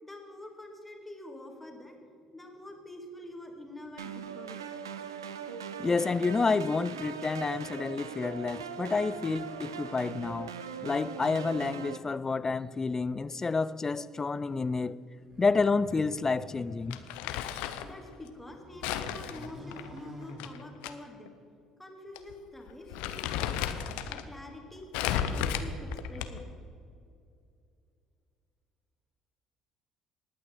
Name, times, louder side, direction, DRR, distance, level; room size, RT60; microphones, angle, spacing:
voice 1, 0.0-2.0 2.3-4.8 9.1-9.4 17.8-21.4 21.8-23.8 24.1-24.9 25.2-26.5, left 1 dB, 10° left, 2.2 m, -47 dB
sound 1, 4.0-12.0, right 7 dB, 80° right, 0.5 m, -40 dB
voice 2, 5.8-10.5 10.8-15.0 15.4-17.0, left 4 dB, 25° left, 0.4 m, -29 dB
sound 2, 15.2-17.8 18.3-21.1, equal, 25° right, 2.0 m, -49 dB
Crumpling crinkling, 16.9-17.9 18.8-20.9 21.3-21.4 22.2-22.3 22.7-24.2 24.9-26.5, left 9 dB, 60° left, 0.7 m, -33 dB
19.5 x 9.0 x 3.8 m
figure-of-eight pair, 55°, 2 cm